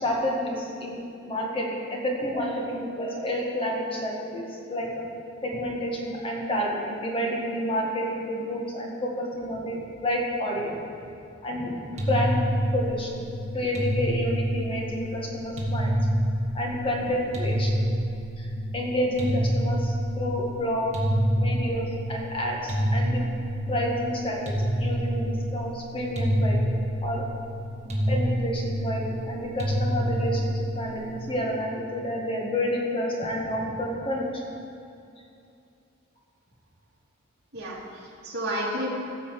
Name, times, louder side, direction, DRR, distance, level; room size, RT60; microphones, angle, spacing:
voice 1, 0.0-1.0 1.3-5.1 5.4-10.8 11.4-12.4 12.7-13.3 13.5-15.9 16.5-17.8 18.4-20.9 21.4-23.2 23.7-27.2 28.1-34.3, equal, 25° left, -2 dB, 1.9 m, -29 dB
sound 1, 12.0-31.3, equal, 35° right, 2.1 m, -27 dB
voice 2, 37.5-38.9, equal, 55° right, -6 dB, 3.2 m, -31 dB
16.5 x 5.8 x 7.6 m, 2.7 s
head